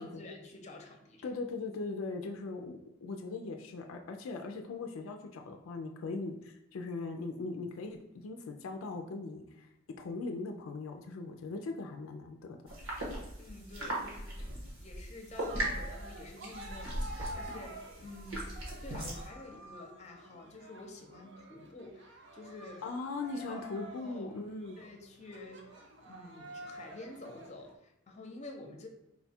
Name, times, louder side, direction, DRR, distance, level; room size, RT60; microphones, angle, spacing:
voice 1, 0.0-1.3 13.4-14.4 14.8-18.4 18.8-22.8 23.3-23.6 24.0-24.3 24.8-28.9, left 2 dB, 35° left, 2 dB, 0.6 m, -49 dB
voice 2, 1.2-9.7 10.0-12.7 22.8-24.8, left 3 dB, 80° left, 4 dB, 0.4 m, -40 dB
sound 1, 12.7-19.3, right 1 dB, 80° right, 1.3 m, -39 dB
Cheering, 15.3-27.7, right 1 dB, 60° right, 0.5 m, -49 dB
4.1 x 2.3 x 4.1 m, 0.90 s
head